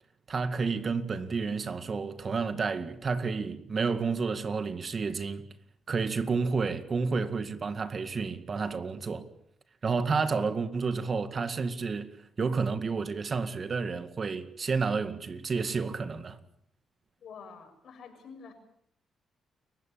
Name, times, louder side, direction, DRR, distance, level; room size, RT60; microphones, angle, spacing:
voice 1, 0.3-5.5 5.9-9.3 9.8-16.4, right 4 dB, 40° right, 2.1 m, -30 dB
voice 2, 17.2-18.5, left 6 dB, 65° left, 6.8 m, -47 dB
29.5 x 16.0 x 8.7 m
cardioid pair, 90°, 0 cm